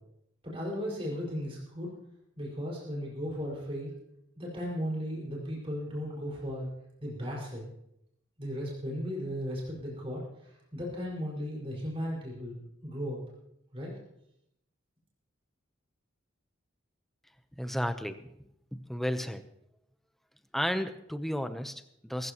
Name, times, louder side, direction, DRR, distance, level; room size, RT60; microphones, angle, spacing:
voice 1, 0.4-2.0 2.4-3.9 4.3-6.7 7.0-7.6 8.4-10.2 10.7-12.6 12.8-13.2 13.7-13.9, equal, 30° right, -4 dB, 5.1 m, -36 dB
voice 2, 17.6-18.3 18.7-19.5 20.5-22.3, equal, ahead, 9 dB, 0.7 m, -33 dB
22.0 x 15.0 x 3.0 m, 0.79 s
head